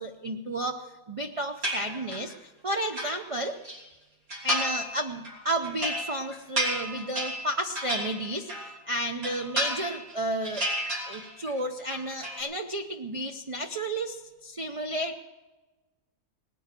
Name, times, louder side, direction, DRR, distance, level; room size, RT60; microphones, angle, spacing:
voice 1, 0.0-3.6 4.4-10.7 11.1-15.2, right 1 dB, 45° right, 5 dB, 0.4 m, -32 dB
sound 1, 1.6-2.3 2.7-3.8 4.3-4.9 5.2-8.8 9.1-10.1 10.4-11.5 11.8-12.4, right 1 dB, 70° right, 3.7 m, -32 dB
19.0 x 9.3 x 6.7 m, 1.2 s
omnidirectional pair, 1.6 m